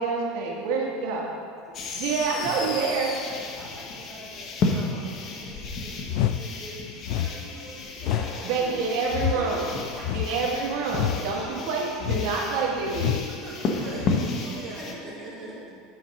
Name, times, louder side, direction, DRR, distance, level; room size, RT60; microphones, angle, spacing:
voice 1, 0.0-1.3 1.9-3.1 8.4-9.7 10.1-13.2 14.1-14.2, right 4 dB, 65° right, -2 dB, 1.3 m, -27 dB
sound 1, 1.7-14.9, left 3 dB, 35° left, 0.9 m, -33 dB
voice 2, 3.3-8.7 9.3-10.4 11.1-11.6 12.5-12.7 14.8-15.6, equal, ahead, -8 dB, 2.2 m, -45 dB
sound 2, 6.1-6.4 7.0-7.3 8.0-8.3 9.1-9.4 10.0-10.4 10.9-11.2 12.0-12.3 12.9-13.3 14.0-14.3, left 11 dB, 60° left, 0.3 m, -27 dB
voice 3, 13.4-15.8, right 2 dB, 35° right, -4 dB, 1.4 m, -40 dB
9.1 x 5.3 x 5.2 m, 2.3 s
supercardioid pair, 145°, 0 cm